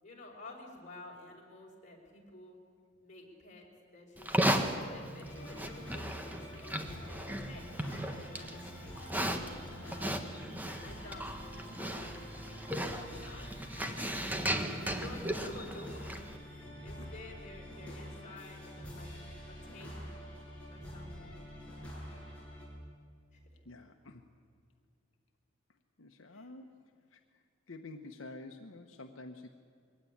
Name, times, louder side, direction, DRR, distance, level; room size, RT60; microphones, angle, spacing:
voice 1, 0.0-2.6 3.0-3.7 3.9-4.5 4.7-9.0 9.8-10.3 10.6-19.2 19.4-20.0 20.7-21.4 23.3-23.4 26.3-26.5, left 2 dB, 40° left, -1 dB, 4.9 m, -52 dB
Livestock farm animals working animals, 4.2-16.4, right 1 dB, 10° right, 1.4 m, -36 dB
sound 1, 5.2-22.7, equal, 5° left, 6.9 m, -47 dB
voice 2, 16.6-17.1 23.6-24.2 26.0-26.8 27.1-27.2 27.7-29.5, left 2 dB, 80° left, 4 dB, 1.1 m, -49 dB
22.5 x 16.5 x 9.9 m, 2.2 s
head